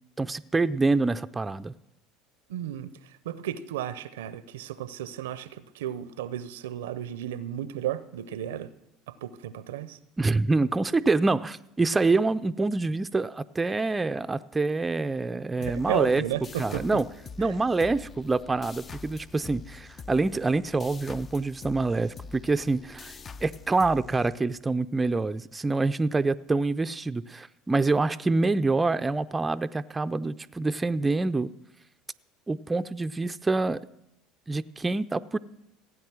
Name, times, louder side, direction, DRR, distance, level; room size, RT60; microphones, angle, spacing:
voice 1, 0.2-1.7 10.2-16.2 16.6-17.1 17.4-31.5 32.5-33.9 34.5-35.4, right 3 dB, 20° right, 10 dB, 0.4 m, -26 dB
voice 2, 2.5-8.7 9.1-10.0 15.6-16.9 17.4-17.6, right 12 dB, 80° right, 17 dB, 0.6 m, -34 dB
sound 1, 15.6-24.8, left 5 dB, 35° left, 0.5 m, -45 dB
16.0 x 8.9 x 6.1 m, 0.85 s
hypercardioid pair, 75°, 0 cm